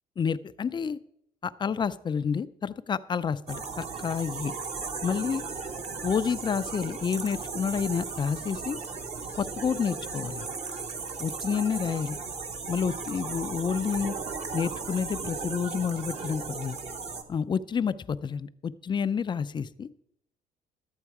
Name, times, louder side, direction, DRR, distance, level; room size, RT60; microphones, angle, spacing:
voice 1, 0.2-1.0 1.4-4.5 5.0-5.5 6.0-8.8 9.4-10.5 11.2-12.2 12.7-14.1 14.5-16.8 17.3-19.9, left 6 dB, 25° left, 14 dB, 0.4 m, -29 dB
sound 1, 3.5-17.2, right 4 dB, 40° right, 1.1 m, -36 dB
12.5 x 8.0 x 4.7 m, 0.77 s
cardioid pair, 110°, 17 cm